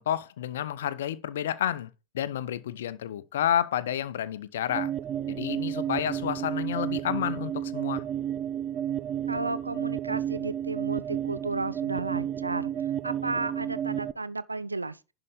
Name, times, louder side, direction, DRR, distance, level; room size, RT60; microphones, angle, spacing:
voice 1, 0.0-1.9 2.1-4.9 5.3-8.1, left 10 dB, 60° left, 0.8 m, -30 dB
sound 1, 4.7-14.1, right 10 dB, 30° right, 0.5 m, -31 dB
voice 2, 9.3-12.7 13.0-15.0, right 3 dB, 80° right, 0.6 m, -33 dB
11.0 x 4.9 x 5.1 m
figure-of-eight pair, 90°, 0 cm